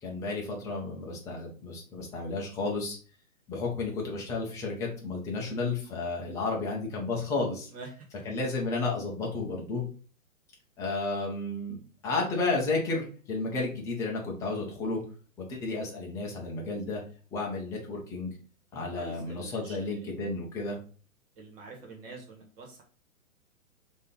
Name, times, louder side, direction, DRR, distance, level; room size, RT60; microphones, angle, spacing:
voice 1, 0.0-3.0 3.5-7.7 8.2-9.8 10.8-11.8 12.0-15.0 15.5-17.0 17.3-18.3 18.7-20.8, left 3 dB, 10° left, -1 dB, 0.5 m, -32 dB
voice 2, 7.7-8.1 19.0-20.1 21.4-22.8, right 3 dB, 40° right, 0 dB, 1.6 m, -46 dB
3.3 x 2.9 x 3.8 m, 0.39 s
hypercardioid pair, 135°, 42 cm